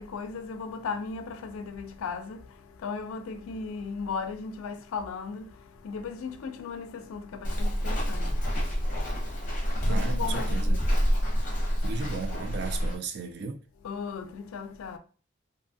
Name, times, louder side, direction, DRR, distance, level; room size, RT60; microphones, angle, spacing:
voice 1, 0.0-2.4 2.8-5.5 5.8-8.3 9.9-10.8 13.8-15.0, left 5 dB, 90° left, 0.4 m, -36 dB
Walk footsteps, 7.4-12.9, equal, 35° left, 0.7 m, -27 dB
voice 2, 9.5-10.8 11.8-13.6, right 5 dB, 50° right, 0.3 m, -36 dB
2.7 x 2.2 x 2.6 m
head